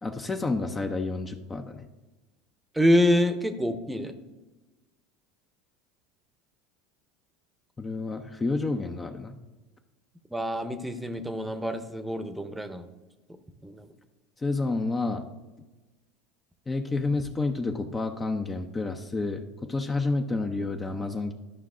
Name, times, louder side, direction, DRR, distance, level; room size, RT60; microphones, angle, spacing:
voice 1, 0.0-1.8 7.8-9.4 14.4-15.3 16.7-21.3, left 3 dB, 20° left, 5 dB, 0.6 m, -29 dB
voice 2, 2.7-4.1 10.3-12.9 13.6-13.9, left 1 dB, 5° right, 9 dB, 0.8 m, -26 dB
12.0 x 5.5 x 3.7 m, 1.1 s
hypercardioid pair, 75°, 0 cm